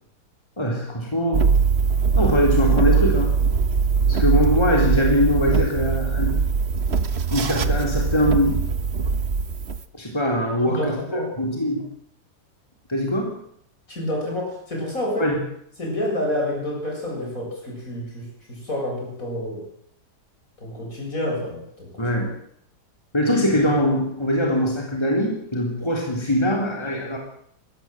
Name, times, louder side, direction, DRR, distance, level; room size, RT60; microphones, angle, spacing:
voice 1, 0.6-1.5 2.1-3.3 4.1-6.4 7.3-8.6 9.9-11.8 12.9-13.3 15.2-15.4 22.0-22.3 23.1-27.2, equal, 15° left, 0 dB, 3.9 m, -22 dB
sound 1, 1.3-9.8, right 5 dB, 40° right, 1.3 m, -21 dB
voice 2, 10.6-11.3 13.9-15.3 15.8-19.7 20.6-22.1, left 1 dB, 55° left, 0 dB, 7.7 m, -28 dB
21.0 x 16.5 x 7.7 m, 0.67 s
omnidirectional pair, 1.8 m